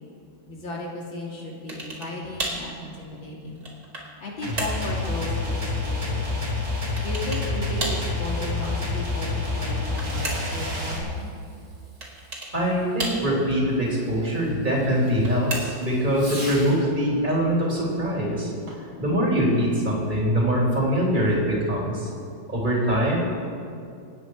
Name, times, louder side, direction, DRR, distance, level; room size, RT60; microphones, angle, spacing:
voice 1, 0.5-3.6 4.2-6.3 7.0-11.1, left 1 dB, 75° left, -3 dB, 3.6 m, -35 dB
sound 1, 1.7-2.1 2.4-2.7 3.3-4.1 4.6-4.9 7.0-7.5 7.8-8.1 9.5-10.6 12.0-12.5 13.0-13.5 15.0-15.9, right 2 dB, 50° right, 3.6 m, -32 dB
sound 2, 4.4-11.0, left 3 dB, 65° right, 3.6 m, -28 dB
Fireworks, 9.8-16.9 18.6-19.0, right 1 dB, 90° right, 4.4 m, -45 dB
voice 2, 12.5-18.5 19.0-22.1 22.5-23.2, equal, 25° right, -4 dB, 3.6 m, -23 dB
27.0 x 9.3 x 4.8 m, 2.5 s
omnidirectional pair, 2.2 m